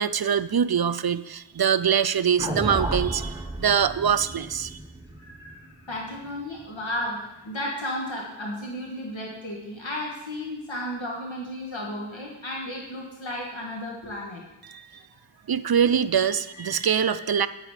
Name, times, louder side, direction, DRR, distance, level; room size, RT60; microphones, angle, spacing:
voice 1, 0.0-4.8 14.6-14.9 15.5-17.5, right 8 dB, 50° right, 14 dB, 0.5 m, -23 dB
sound 1, 2.4-6.7, right 1 dB, 10° right, 0.9 m, -33 dB
voice 2, 5.2-14.4 16.2-17.3, left 1 dB, 75° left, -2 dB, 1.8 m, -34 dB
9.8 x 8.5 x 5.0 m, 0.94 s
wide cardioid pair, 50°, 47 cm